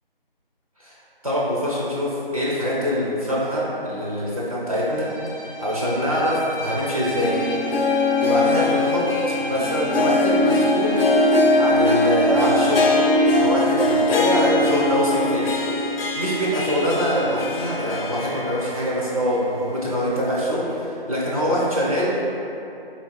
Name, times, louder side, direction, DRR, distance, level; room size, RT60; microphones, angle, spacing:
voice 1, 1.2-5.1 5.4-7.3 8.2-11.0 11.6-13.0 13.3-15.5 16.2-22.1, equal, 40° right, -7 dB, 0.5 m, -24 dB
Bowed string instrument, 4.8-13.5, right 1 dB, 30° left, 0.7 m, -33 dB
Harp, 6.9-19.1 19.4-19.5 20.4-20.5, left 2 dB, 75° left, 0.5 m, -21 dB
4.1 x 3.3 x 2.2 m, 2.8 s
figure-of-eight pair, 160°, 29 cm